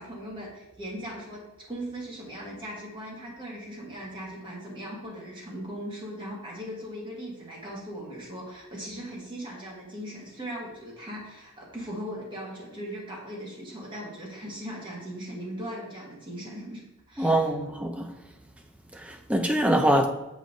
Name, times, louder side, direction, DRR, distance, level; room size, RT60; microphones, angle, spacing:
voice 1, 0.0-1.4 1.7-16.8 17.1-17.5, equal, 20° right, 1.3 m, -39 dB
voice 2, 17.2-18.1 18.9-20.1, right 1 dB, 5° right, 0.4 m, -24 dB
7.4 x 5.2 x 2.6 m
head